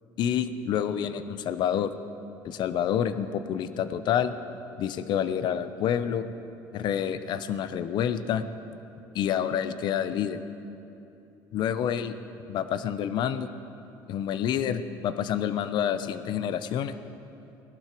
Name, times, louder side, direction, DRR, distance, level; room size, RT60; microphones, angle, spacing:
voice 1, 0.2-1.9 2.4-4.3 4.8-6.2 6.7-8.4 9.1-10.4 11.5-12.2 12.5-13.5 14.1-16.9, left 9 dB, 60° left, 12 dB, 0.7 m, -28 dB
18.0 x 12.0 x 4.5 m, 2.8 s
supercardioid pair, 100°, 9 cm